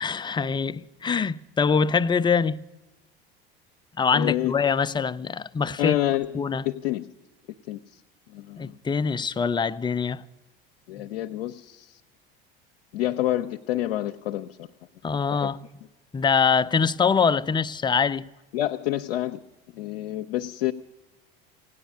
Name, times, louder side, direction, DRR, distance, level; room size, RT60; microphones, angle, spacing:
voice 1, 0.0-2.6 4.0-5.9 6.3-6.6 8.6-10.2 11.0-11.1 15.0-15.6 16.1-18.3, left 6 dB, 15° left, 0.4 m, -24 dB
voice 2, 4.1-4.5 5.8-6.4 6.6-7.1 7.7-7.8 8.3-8.7 10.9-11.9 12.9-14.6 15.3-15.5 18.5-19.4 19.7-20.7, left 14 dB, 85° left, 0.6 m, -28 dB
17.0 x 10.0 x 8.4 m
hypercardioid pair, 75°, 30 cm